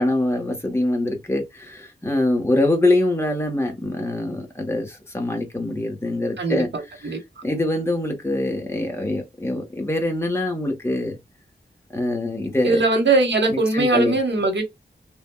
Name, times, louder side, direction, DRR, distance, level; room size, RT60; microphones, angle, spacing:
voice 1, 0.0-11.2 11.9-12.8 13.5-14.2, left 1 dB, 15° left, 1.0 m, -24 dB
voice 2, 6.4-7.4 12.6-14.6, right 3 dB, 80° right, 1.0 m, -21 dB
3.3 x 2.2 x 2.2 m
wide cardioid pair, 100°, 18 cm